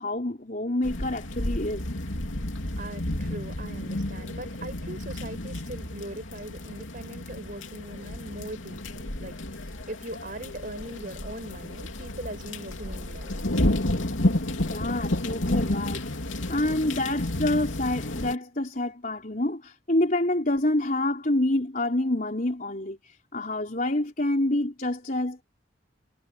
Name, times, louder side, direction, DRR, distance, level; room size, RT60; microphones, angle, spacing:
voice 1, 0.0-1.8 14.7-16.1 16.5-23.0 23.3-25.4, left 1 dB, 45° left, 4.1 m, -27 dB
sound 1, 0.8-18.3, left 1 dB, 85° left, 3.1 m, -31 dB
voice 2, 2.8-13.4, right 1 dB, 45° right, 6.6 m, -40 dB
head